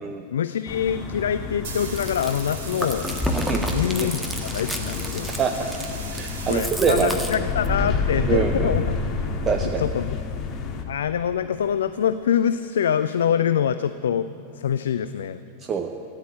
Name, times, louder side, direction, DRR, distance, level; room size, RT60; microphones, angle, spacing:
voice 1, 0.3-3.2 3.7-4.2 4.5-5.3 6.5-9.0 9.6-10.2 10.9-15.4, left 8 dB, 65° left, 12 dB, 0.4 m, -25 dB
sound 1, 0.7-10.8, left 4 dB, 35° left, 1.7 m, -29 dB
sound 2, 1.3-7.3, right 4 dB, 55° right, 2.6 m, -39 dB
Chewing mastication, 1.8-7.9, equal, 5° right, 1.6 m, -30 dB
voice 2, 3.4-3.7 4.0-4.1 5.4-5.5 6.2-7.5 8.2-8.7 9.4-9.8 15.6-15.9, right 6 dB, 25° right, 4 dB, 0.8 m, -24 dB
15.0 x 10.5 x 8.6 m, 2.7 s
figure-of-eight pair, 90°, 0 cm